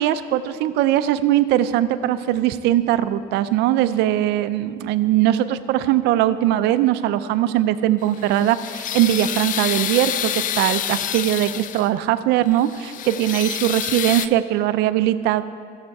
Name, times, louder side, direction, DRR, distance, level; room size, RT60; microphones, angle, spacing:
voice 1, 0.0-15.4, right 13 dB, 90° right, 13 dB, 0.5 m, -20 dB
sound 1, 8.0-12.0 12.5-14.3, left 11 dB, 50° left, 0.4 m, -27 dB
14.0 x 7.3 x 4.7 m, 2.2 s
cardioid pair, 110°, 17 cm